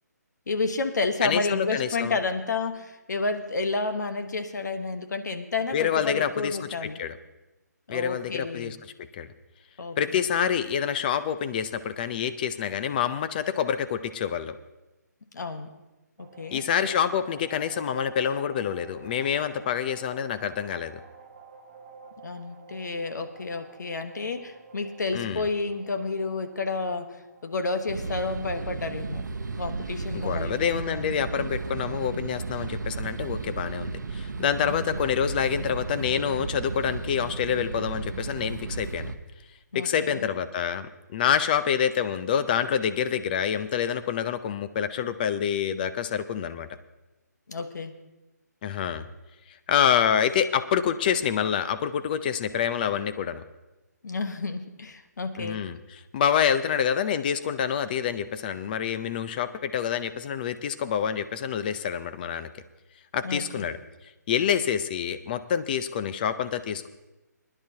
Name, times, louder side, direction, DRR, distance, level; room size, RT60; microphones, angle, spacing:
voice 1, 0.5-7.0 7.9-8.7 9.8-10.2 15.3-15.7 16.2-16.6 22.2-27.2 27.4-29.2 29.6-31.3 34.6-35.0 39.7-40.3 47.5-47.9 54.0-55.6 63.2-63.7, left 3 dB, 75° left, 8 dB, 1.2 m, -31 dB
voice 2, 1.2-2.2 5.7-7.2 7.9-9.3 10.0-14.5 16.5-21.0 25.1-25.4 30.1-39.1 39.7-46.7 48.6-49.0 49.7-53.4 55.4-62.5 63.1-63.8 64.3-66.9, left 8 dB, 30° left, 12 dB, 0.5 m, -27 dB
sound 1, 16.2-34.8, right 5 dB, 30° right, 0.8 m, -51 dB
sound 2, 27.9-39.2, right 4 dB, 85° right, 0.8 m, -34 dB
21.0 x 10.5 x 2.8 m, 1.1 s
hypercardioid pair, 155°, 10 cm